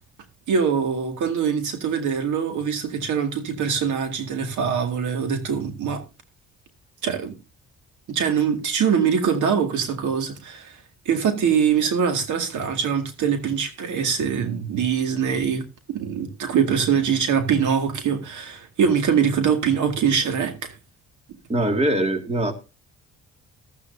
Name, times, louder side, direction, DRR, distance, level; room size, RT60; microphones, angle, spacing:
voice 1, 0.5-6.0 7.0-7.3 8.1-10.7 11.1-15.6 15.9-20.7, right 7 dB, 75° right, 2.1 m, -23 dB
voice 2, 21.5-22.5, right 1 dB, 20° right, 2.1 m, -22 dB
15.0 x 12.5 x 2.7 m
cardioid pair, 90°, 30 cm